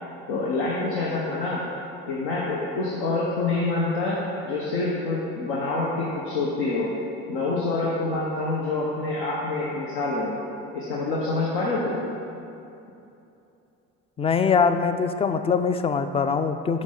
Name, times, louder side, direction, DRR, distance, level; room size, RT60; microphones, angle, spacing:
voice 1, 0.3-1.6 2.1-6.9 7.3-10.3 10.7-12.1, left 3 dB, 80° left, -4 dB, 1.0 m, -26 dB
voice 2, 14.2-16.8, left 5 dB, 20° left, 10 dB, 0.3 m, -22 dB
6.4 x 6.0 x 3.8 m, 2.8 s
hypercardioid pair, 70°, 33 cm